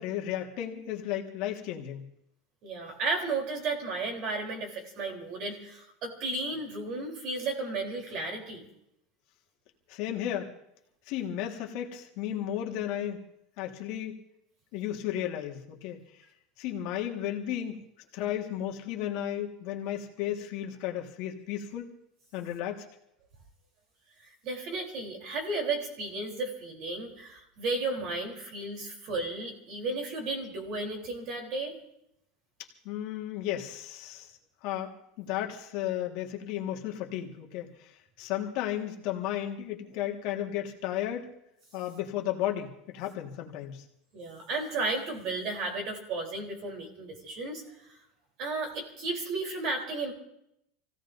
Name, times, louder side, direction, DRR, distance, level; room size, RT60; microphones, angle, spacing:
voice 1, 0.0-2.1 9.9-10.5 11.1-13.3 13.6-14.2 14.7-16.0 16.6-17.8 18.1-21.9 22.3-22.9 32.9-34.3 34.6-41.3 41.7-43.8, left 11 dB, 50° left, 1 dB, 1.8 m, -34 dB
voice 2, 2.6-8.6 24.4-31.8 44.1-48.0 48.4-50.1, right 3 dB, 45° right, 2 dB, 3.7 m, -34 dB
27.5 x 16.5 x 2.7 m, 0.79 s
supercardioid pair, 165°, 0 cm